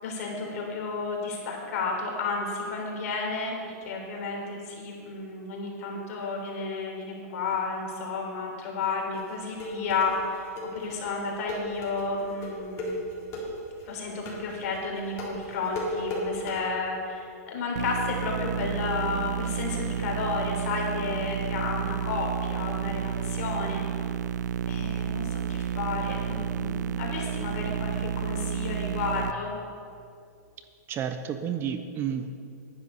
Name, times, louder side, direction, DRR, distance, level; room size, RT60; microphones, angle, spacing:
voice 1, 0.0-10.5 10.7-13.0 13.8-23.8 24.7-29.5, left 4 dB, 55° left, 0 dB, 3.5 m, -32 dB
sound 1, 9.1-16.6, left 1 dB, 35° left, 3.4 m, -35 dB
sound 2, 17.8-29.3, right 8 dB, 85° right, 0.4 m, -31 dB
voice 2, 30.9-32.3, right 8 dB, 25° right, 9 dB, 0.6 m, -31 dB
11.0 x 10.5 x 5.6 m, 2.5 s
hypercardioid pair, 140°, 9 cm